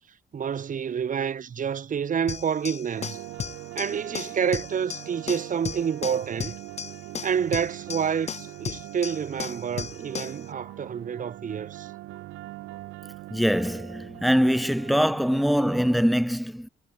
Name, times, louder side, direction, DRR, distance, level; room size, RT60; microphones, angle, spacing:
voice 1, 0.3-3.2 3.7-6.6 7.2-11.9, right 7 dB, 40° right, 1.0 m, -28 dB
sound 1, 2.3-10.4, left 7 dB, 35° left, 0.5 m, -36 dB
sound 2, 2.9-16.2, right 18 dB, 85° right, 0.5 m, -42 dB
voice 2, 13.3-16.7, equal, ahead, 0.9 m, -23 dB
cardioid pair, 90°, 20 cm